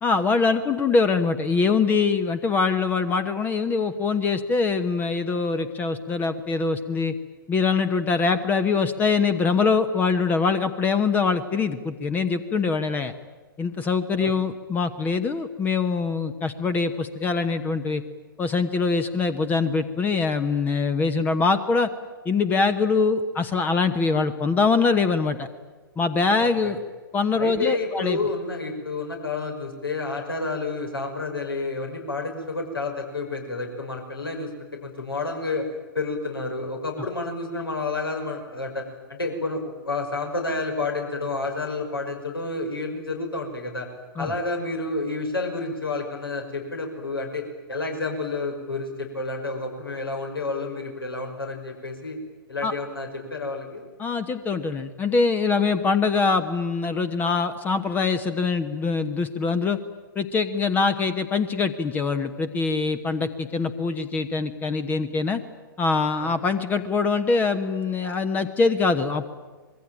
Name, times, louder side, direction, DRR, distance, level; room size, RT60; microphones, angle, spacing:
voice 1, 0.0-7.1 7.5-13.1 13.6-18.0 18.4-21.9 22.2-25.5 26.0-26.8 27.1-28.2 44.2-44.3 52.6-52.7 54.0-59.8 60.1-65.4 65.8-69.2, left 4 dB, 15° left, 11 dB, 1.1 m, -23 dB
voice 2, 26.3-26.7 27.4-35.7 35.9-43.9 44.2-52.2 52.5-53.8 66.2-66.4, left 3 dB, 80° left, 2 dB, 5.8 m, -30 dB
25.5 x 22.0 x 9.1 m, 1.3 s
figure-of-eight pair, 115°, 12 cm